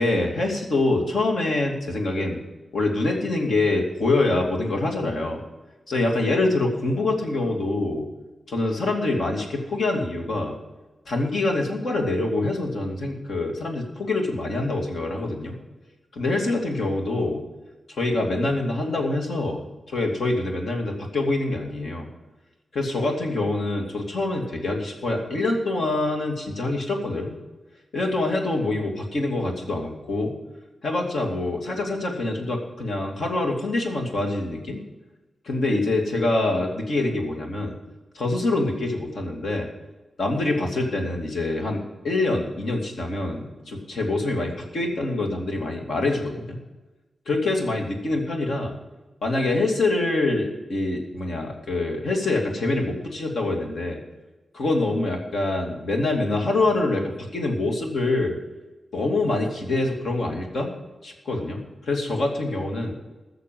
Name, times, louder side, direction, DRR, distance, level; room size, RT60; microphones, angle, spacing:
voice 1, 0.0-2.4 2.7-5.4 5.9-8.1 8.5-10.6 11.1-15.6 16.1-17.4 17.9-19.6 19.9-22.1 22.7-27.4 27.9-30.4 30.8-34.8 35.4-37.8 38.1-39.7 40.2-46.6 47.3-48.7 49.2-54.0 54.5-58.4 58.9-60.7 61.0-63.0, left 2 dB, 65° left, 1 dB, 2.6 m, -25 dB
14.5 x 6.7 x 7.6 m, 1.1 s
wide cardioid pair, 155°, 0 cm